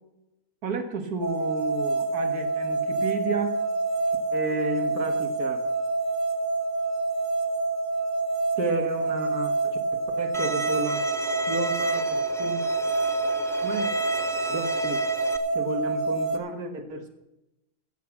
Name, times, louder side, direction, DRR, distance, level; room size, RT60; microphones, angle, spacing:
voice 1, 0.6-3.6 4.3-5.6 8.6-12.6 13.6-13.9 14.5-15.0 15.5-17.1, right 3 dB, 75° right, 6 dB, 2.0 m, -32 dB
sound 1, 1.2-16.4, right 3 dB, 60° right, 1.7 m, -27 dB
Bowed string instrument, 10.3-15.4, right 1 dB, 5° left, 0.4 m, -33 dB
14.5 x 8.3 x 5.9 m, 0.90 s
omnidirectional pair, 1.6 m